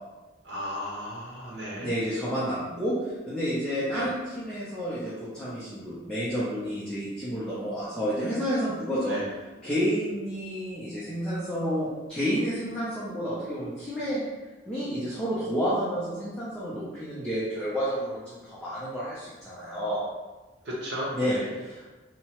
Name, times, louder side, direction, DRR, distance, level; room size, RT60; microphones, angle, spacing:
voice 1, 0.4-1.9 3.9-4.1 9.0-9.3 20.6-21.5, equal, 80° right, -4 dB, 0.9 m, -35 dB
voice 2, 1.8-9.2 9.6-14.2 14.7-20.0 21.1-21.4 21.6-21.9, equal, 5° left, -10 dB, 0.5 m, -30 dB
2.8 x 2.1 x 2.9 m, 1.2 s
head